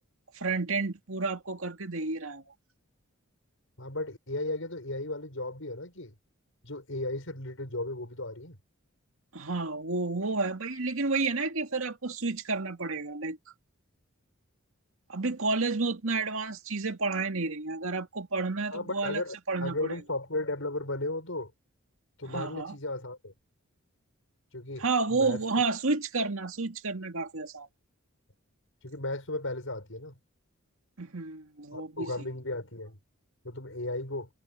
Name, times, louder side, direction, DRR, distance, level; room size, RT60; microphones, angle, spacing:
voice 1, 0.3-2.4 9.3-13.4 15.1-19.2 19.5-19.7 22.2-22.7 24.8-27.7 31.0-32.1, right 3 dB, 75° right, 2.1 m, -30 dB
voice 2, 3.8-6.1 6.6-8.6 18.7-21.5 22.2-23.3 24.5-25.4 28.8-30.2 31.7-33.0 33.4-34.3, left 2 dB, 65° left, 6.4 m, -35 dB
head